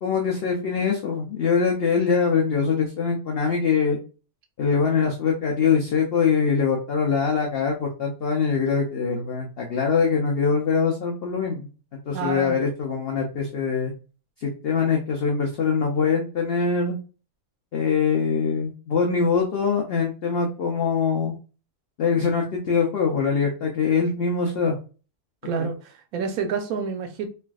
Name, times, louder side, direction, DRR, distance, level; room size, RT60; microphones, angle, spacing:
voice 1, 0.0-4.0 4.6-13.9 14.4-17.0 17.7-21.4 22.0-24.8 25.6-25.7, left 5 dB, 75° left, 0.5 m, -23 dB
voice 2, 12.1-12.6 25.4-27.3, right 6 dB, 70° right, 1.0 m, -28 dB
3.2 x 2.4 x 2.3 m
omnidirectional pair, 1.6 m